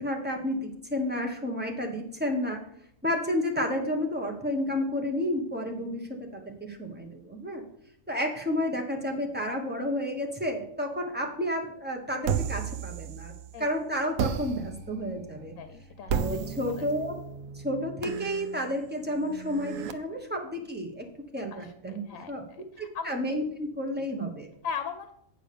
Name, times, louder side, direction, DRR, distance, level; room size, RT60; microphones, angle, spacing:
voice 1, 0.0-2.6 3.0-7.6 8.1-13.3 13.6-15.5 16.1-17.1 17.5-21.1 21.3-22.0 22.3-22.4 22.8-24.5, left 1 dB, 10° right, 1 dB, 1.3 m, -31 dB
sound 1, 12.2-13.6 14.2-19.9, right 8 dB, 80° right, 1.0 m, -34 dB
voice 2, 15.6-16.4 16.7-16.9 19.9-20.0 21.5-23.2 24.0-24.1 24.6-25.1, left 6 dB, 80° left, 8 dB, 1.0 m, -39 dB
8.6 x 5.1 x 6.8 m, 0.69 s
omnidirectional pair, 1.4 m